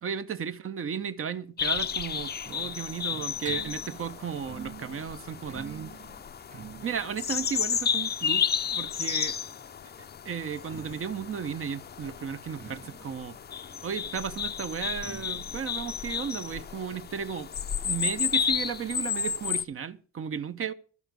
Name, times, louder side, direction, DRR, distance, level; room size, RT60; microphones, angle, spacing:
voice 1, 0.0-5.9 6.8-9.4 10.2-13.4 13.8-17.5 17.8-20.7, right 7 dB, 45° right, 1.0 m, -34 dB
sound 1, 1.6-19.6, left 7 dB, 35° left, 0.6 m, -32 dB
sound 2, 1.8-9.3 10.4-17.8 18.1-18.2 18.4-18.5 19.2-19.3, right 7 dB, 25° right, 0.8 m, -49 dB
12.0 x 9.8 x 6.9 m
cardioid pair, 90°, 30 cm